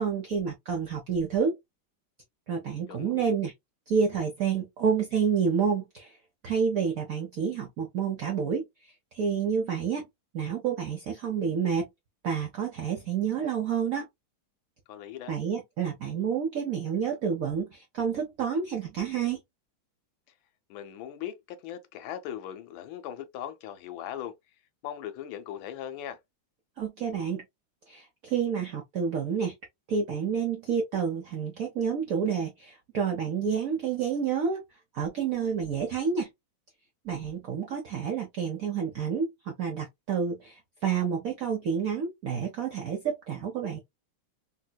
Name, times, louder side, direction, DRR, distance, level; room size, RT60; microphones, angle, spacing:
voice 1, 0.0-1.6 2.5-3.5 3.9-6.1 6.4-10.1 10.3-11.9 12.2-14.1 15.3-19.4 26.8-27.4 27.9-29.5 29.9-34.6 34.9-36.3 37.0-43.8, right 6 dB, 75° right, 0.8 m, -29 dB
voice 2, 2.9-3.2 14.9-15.3 20.7-24.3 24.8-26.2, left 10 dB, 75° left, 1.3 m, -39 dB
3.2 x 2.8 x 2.2 m
omnidirectional pair, 2.3 m